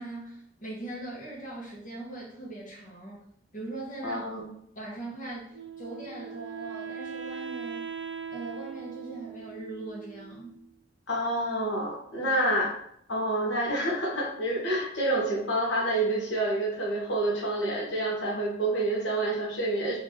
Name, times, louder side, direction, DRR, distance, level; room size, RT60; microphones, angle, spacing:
voice 1, 0.0-3.2 3.5-4.2 4.7-7.9 8.3-10.6 12.2-12.3, right 2 dB, 45° left, -5 dB, 1.1 m, -40 dB
voice 2, 4.0-4.5 11.1-12.7 13.1-20.0, right 1 dB, 75° left, -4 dB, 1.1 m, -28 dB
Wind instrument woodwind instrument, 5.5-10.6, right 6 dB, 85° right, 0.4 m, -40 dB
4.4 x 2.8 x 3.1 m, 0.69 s
head